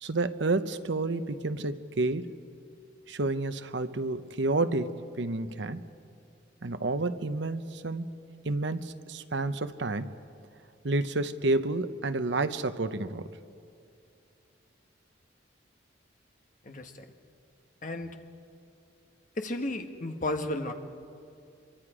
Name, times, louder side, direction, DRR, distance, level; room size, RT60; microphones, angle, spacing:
voice 1, 0.0-2.4 3.1-5.8 6.6-8.0 8.4-10.2 10.8-13.3, right 2 dB, 70° right, 11 dB, 0.8 m, -30 dB
voice 2, 16.6-17.1 17.8-18.2 19.3-20.7, left 1 dB, 45° left, 5 dB, 1.4 m, -33 dB
26.0 x 23.5 x 5.0 m, 2.5 s
head